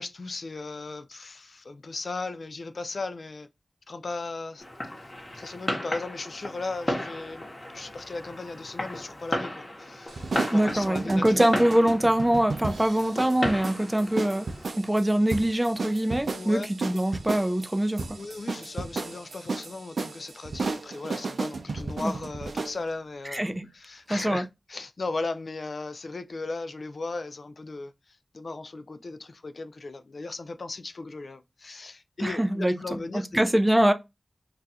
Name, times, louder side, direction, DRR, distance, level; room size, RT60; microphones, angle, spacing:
voice 1, 0.0-3.5 3.9-11.5 16.3-16.7 18.1-23.4 23.7-33.3, left 3 dB, 70° left, 0.3 m, -37 dB
Fireworks, 4.6-14.6, left 1 dB, 35° left, 0.9 m, -35 dB
sound 1, 10.1-22.8, right 3 dB, 80° right, 0.4 m, -34 dB
voice 2, 10.5-14.5 14.8-18.2 22.0-22.1 23.3-23.7 24.1-24.4 32.2-32.7 33.3-33.9, right 1 dB, 15° right, 0.4 m, -23 dB
2.4 x 2.3 x 4.0 m
wide cardioid pair, 60°, 0 cm